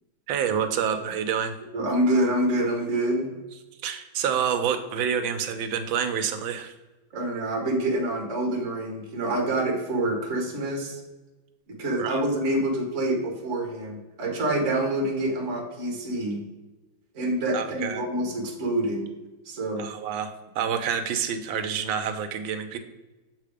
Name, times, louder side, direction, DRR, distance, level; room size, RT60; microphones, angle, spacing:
voice 1, 0.3-1.5 3.8-6.7 12.0-12.2 17.5-18.1 19.7-22.8, right 7 dB, 80° right, 8 dB, 1.4 m, -28 dB
voice 2, 1.7-3.3 7.1-11.0 11.7-16.4 17.1-19.1 19.4-19.9, right 1 dB, 45° right, 0 dB, 1.4 m, -26 dB
6.6 x 3.5 x 4.9 m, 1.1 s
omnidirectional pair, 2.2 m